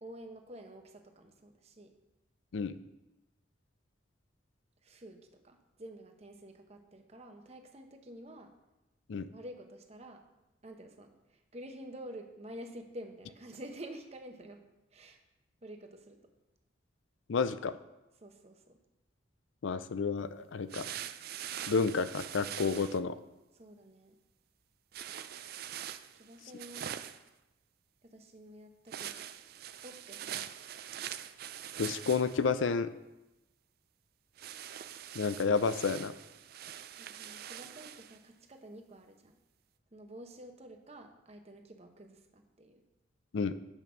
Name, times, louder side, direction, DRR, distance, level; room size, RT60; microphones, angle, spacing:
voice 1, 0.0-1.9 4.8-5.2 5.4-8.5 9.3-10.3 10.6-14.6 14.9-15.2 15.6-16.2 18.2-18.8 23.5-24.2 26.2-26.9 28.0-29.2 29.8-30.5 37.0-39.4 39.9-42.8, right 1 dB, 35° right, 5 dB, 0.9 m, -49 dB
voice 2, 17.3-17.8 19.6-20.9 21.7-23.2 31.8-32.9 35.2-36.1 43.3-43.6, left 5 dB, 80° left, 13 dB, 0.5 m, -30 dB
sound 1, 20.7-23.0 24.9-27.3 28.9-32.5 34.4-38.2, right 10 dB, 50° right, 0.4 m, -43 dB
8.2 x 5.3 x 6.2 m, 1.0 s
head